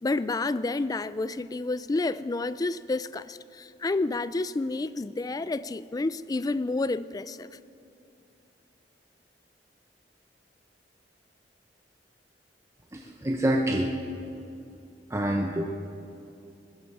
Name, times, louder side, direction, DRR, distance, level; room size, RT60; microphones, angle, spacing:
voice 1, 0.0-7.5, left 2 dB, 20° left, 16 dB, 0.3 m, -29 dB
voice 2, 12.9-13.9 15.1-15.7, right 1 dB, 15° right, 1 dB, 0.8 m, -26 dB
20.0 x 14.5 x 4.8 m, 2.6 s
head